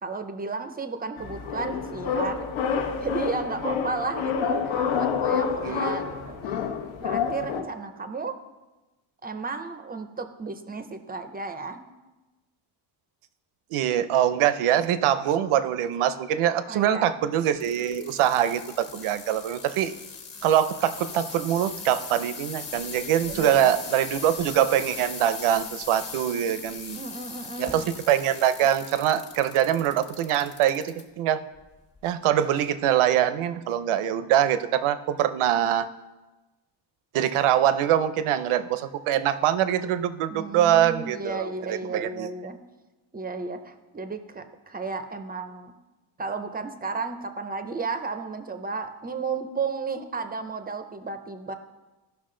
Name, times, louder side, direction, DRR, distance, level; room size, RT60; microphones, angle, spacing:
voice 1, 0.0-2.5 3.0-6.4 7.0-8.4 9.2-11.8 16.7-17.1 23.3-23.7 27.0-27.9 40.2-42.6 43.1-45.7 46.2-51.5, right 4 dB, 20° right, 9 dB, 0.4 m, -33 dB
sound 1, 1.2-7.6, left 6 dB, 75° left, 1.1 m, -28 dB
voice 2, 13.7-19.9 20.4-27.0 27.6-31.4 32.0-35.9 37.1-42.3, right 10 dB, 85° right, 13 dB, 0.7 m, -24 dB
sound 2, 17.6-31.0 31.6-32.0 32.7-32.8, left 4 dB, 30° left, 1.0 m, -40 dB
16.0 x 6.0 x 3.8 m, 1.1 s
cardioid pair, 170°, 48 cm